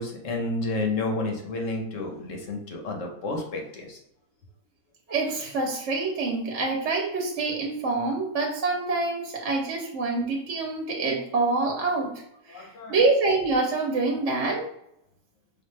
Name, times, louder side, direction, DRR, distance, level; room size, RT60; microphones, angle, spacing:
voice 1, 0.0-4.0 12.5-13.1 14.0-14.2, left 2 dB, 65° left, 1 dB, 1.1 m, -31 dB
voice 2, 5.1-12.1 12.5-14.7, right 3 dB, 60° right, 0 dB, 1.0 m, -26 dB
5.1 x 2.4 x 3.2 m, 0.76 s
omnidirectional pair, 1.5 m